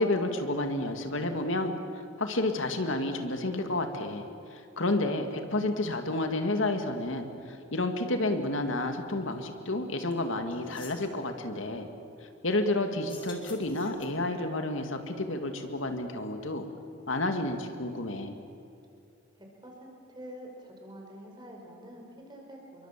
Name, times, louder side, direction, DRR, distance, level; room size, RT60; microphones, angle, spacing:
voice 1, 0.0-1.7 2.2-4.2 4.5-11.9 12.4-16.6 17.1-18.4, left 2 dB, 80° left, 6 dB, 2.2 m, -30 dB
sound 1, 10.1-10.2 10.5-11.1 13.0-14.3, left 4 dB, 25° left, 3.5 m, -49 dB
voice 2, 19.4-22.9, equal, 20° right, 0 dB, 5.4 m, -47 dB
28.0 x 23.5 x 7.5 m, 2.6 s
head